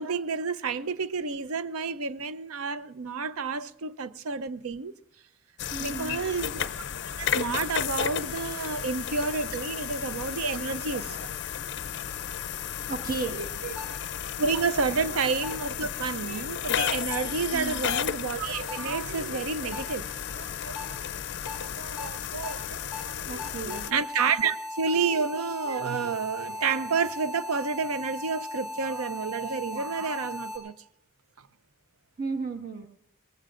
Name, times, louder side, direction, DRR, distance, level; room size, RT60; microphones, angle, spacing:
voice 1, 0.0-4.9 5.8-6.7 7.2-11.2 13.3-13.8 14.4-20.1 20.3-21.1 21.6-22.8 23.1-30.8, right 5 dB, 80° right, 0.6 m, -30 dB
sound 1, 5.6-23.9, left 9 dB, 50° left, 0.4 m, -33 dB
voice 2, 5.7-6.2 10.9-11.3 12.9-13.4 14.9-15.0 17.5-17.8 23.3-23.9 32.2-32.9, right 4 dB, 40° right, 1.5 m, -34 dB
sound 2, 13.8-13.9 15.4-15.5 17.1-17.2 18.7-18.8 19.7-19.8 20.8-20.9 21.5-21.6 22.0-22.1 22.4-22.5 22.9-23.0 23.4-30.6, left 2 dB, 5° right, 3.2 m, -37 dB
23.0 x 19.0 x 2.5 m
head